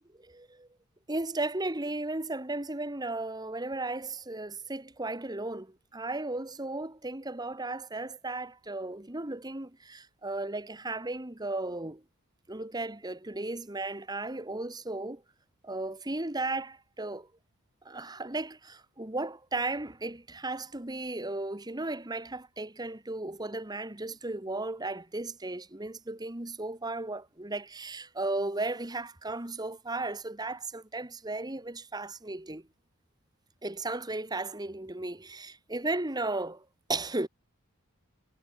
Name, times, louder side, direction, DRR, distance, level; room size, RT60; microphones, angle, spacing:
voice 1, 0.3-0.7 1.1-12.0 12.5-15.2 15.6-17.3 17.8-32.6 33.6-36.6 36.9-37.3, right 2 dB, 20° right, 1.4 m, -35 dB
head